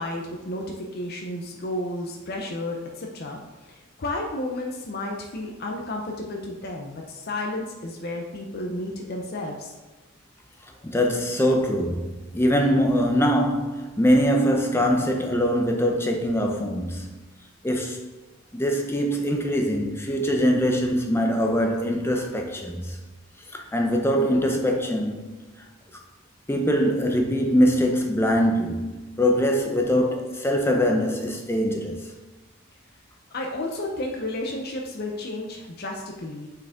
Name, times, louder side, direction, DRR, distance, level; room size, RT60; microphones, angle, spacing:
voice 1, 0.0-9.7 33.3-36.5, left 1 dB, 50° left, 0.7 m, -32 dB
voice 2, 10.8-17.2 17.6-18.1 18.5-23.0 23.5-25.5 26.5-32.1, equal, 10° left, 0.6 m, -23 dB
6.2 x 4.7 x 3.6 m
head